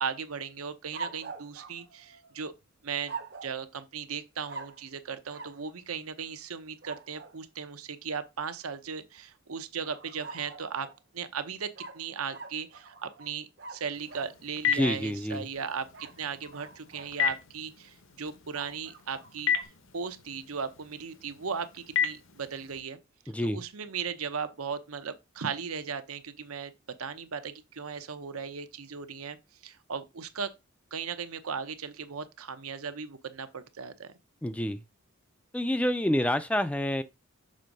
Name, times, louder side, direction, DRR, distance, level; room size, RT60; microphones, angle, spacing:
voice 1, 0.0-2.5 2.8-3.2 3.4-10.9 11.1-19.5 19.9-23.0 23.4-26.7 27.0-29.4 29.6-30.5 30.9-34.1, right 6 dB, 85° right, 0.8 m, -37 dB
sound 1, 0.9-2.5 3.1-3.6 4.5-4.9 5.3-5.6 6.8-7.4 9.8-11.0 11.7-14.4 15.9-17.2 18.5-19.7, right 4 dB, 50° right, 0.7 m, -44 dB
Telephone, 13.9-22.8, left 7 dB, 65° left, 0.9 m, -35 dB
voice 2, 14.7-15.5 23.3-23.6 34.4-34.8 35.5-37.0, left 1 dB, 5° left, 0.3 m, -28 dB
6.4 x 3.5 x 5.2 m
head